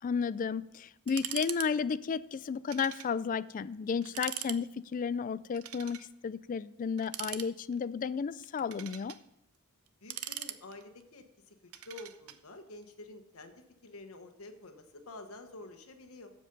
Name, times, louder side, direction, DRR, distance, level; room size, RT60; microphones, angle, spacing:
voice 1, 0.0-9.1, left 6 dB, 40° left, 18 dB, 0.3 m, -33 dB
sound 1, 1.1-1.7 1.9-2.1 2.7-3.1 3.5-3.6 4.0-4.6 5.5-6.1 7.0-7.8 8.4-9.2 9.9-11.0 11.7-12.4, right 12 dB, 80° right, 0.6 m, -41 dB
voice 2, 10.0-11.5 11.8-16.3, left 2 dB, 75° left, 7 dB, 1.2 m, -49 dB
14.5 x 5.3 x 5.3 m, 0.88 s
head